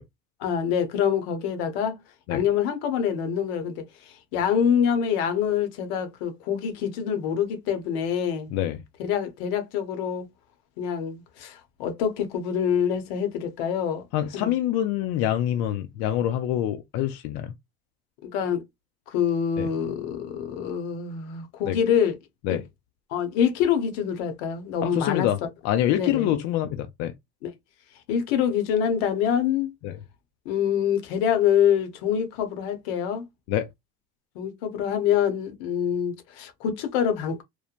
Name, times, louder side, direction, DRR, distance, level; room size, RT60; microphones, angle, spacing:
voice 1, 0.4-2.0 2.3-8.5 9.0-10.3 10.8-14.0 14.3-14.5 18.2-18.6 19.1-22.2 22.5-22.6 23.1-25.3 25.9-26.4 27.4-27.5 28.1-29.7 30.5-33.2 34.3-37.4, left 8 dB, 90° left, 0.8 m, -25 dB
voice 2, 14.1-17.5 19.6-19.7 21.7-21.8 22.4-22.6 24.8-25.4 25.6-27.1 29.8-30.0 33.5-33.7, left 12 dB, 70° left, 0.5 m, -25 dB
3.0 x 2.1 x 2.4 m
supercardioid pair, 115°, 29 cm